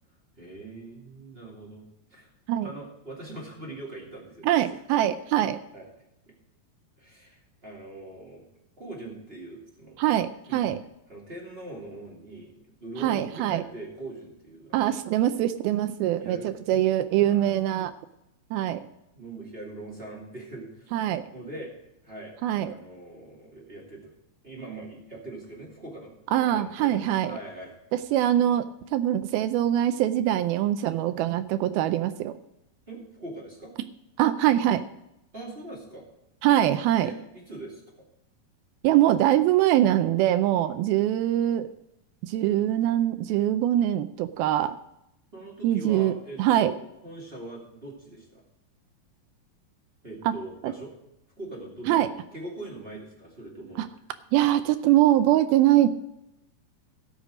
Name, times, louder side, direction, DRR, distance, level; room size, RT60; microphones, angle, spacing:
voice 1, 0.4-2.3 2.6-4.8 5.7-5.9 6.3-6.4 7.0-8.4 8.8-10.0 10.5-10.6 11.1-14.9 16.2-16.5 17.3-17.5 19.1-21.0 21.3-21.7 22.0-24.1 24.4-26.2 26.5-27.8 32.9-33.7 35.3-36.1 37.0-37.8 45.3-48.4 50.0-50.9 51.4-53.8, right 2 dB, 20° right, -3 dB, 2.0 m, -42 dB
voice 2, 4.4-5.6 10.0-10.8 13.0-13.6 14.7-17.9 18.5-18.9 20.9-21.2 22.4-22.7 26.3-27.4 27.9-28.7 28.9-32.3 34.2-34.8 36.4-37.1 38.8-41.7 42.2-44.8 45.6-46.1 46.4-46.7 50.3-50.4 50.6-50.7 51.9-52.1 53.8-53.9 54.3-55.9, right 12 dB, 80° right, 11 dB, 2.3 m, -23 dB
17.0 x 6.7 x 5.0 m, 0.83 s
omnidirectional pair, 4.6 m